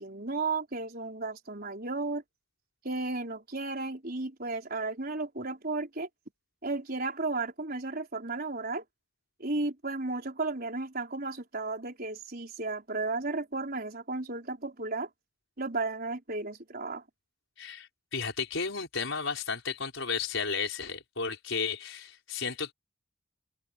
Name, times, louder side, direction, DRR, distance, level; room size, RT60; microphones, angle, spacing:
voice 1, 0.0-2.2 2.8-6.1 6.6-8.8 9.4-15.1 15.6-17.0, right 3 dB, 45° right, 4.5 m, -34 dB
voice 2, 17.6-22.7, left 5 dB, 65° left, 5.9 m, -33 dB
open air
head